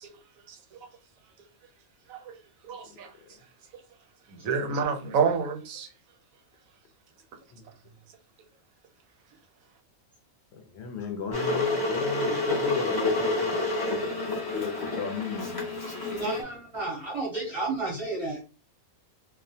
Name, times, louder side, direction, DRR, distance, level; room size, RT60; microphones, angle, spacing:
voice 1, 2.7-3.1 4.3-5.9, right 6 dB, 80° right, 1.0 m, -28 dB
voice 2, 10.5-15.8, left 6 dB, 65° left, 0.7 m, -35 dB
Water / Boiling, 11.3-16.4, left 2 dB, 35° left, 0.3 m, -29 dB
voice 3, 16.1-18.4, right 3 dB, 35° right, 0.6 m, -32 dB
2.3 x 2.0 x 2.6 m
omnidirectional pair, 1.4 m